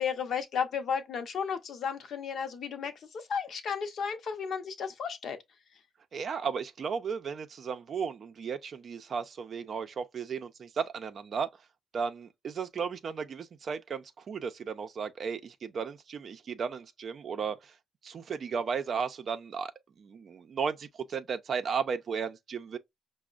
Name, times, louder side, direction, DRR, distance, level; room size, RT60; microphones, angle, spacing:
voice 1, 0.0-5.4, left 6 dB, 60° left, 0.7 m, -33 dB
voice 2, 6.1-11.5 11.9-17.7 18.0-19.7 20.0-22.8, right 6 dB, 55° right, 0.4 m, -35 dB
5.0 x 2.1 x 2.4 m
cardioid pair, 90°, 0 cm